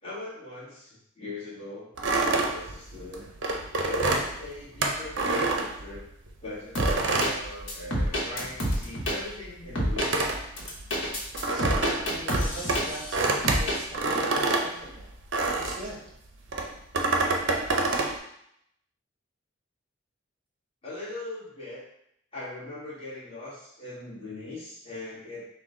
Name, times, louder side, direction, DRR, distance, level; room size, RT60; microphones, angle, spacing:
voice 1, 0.0-3.3 3.8-6.0 6.4-10.1 20.8-21.8 22.3-25.4, left 2 dB, 25° left, -9 dB, 1.6 m, -40 dB
sound 1, 2.0-6.3 6.8-8.3 8.5-15.9 16.5-18.2, right 3 dB, 60° right, 0.6 m, -27 dB
sound 2, 6.7-7.3 7.7-9.2 9.8-10.1 10.6-13.1 13.4-13.8, equal, 65° left, 1.1 m, -28 dB
voice 2, 11.5-15.1 15.5-16.0, equal, 15° right, -4 dB, 0.9 m, -41 dB
6.1 x 2.2 x 3.7 m, 0.74 s
head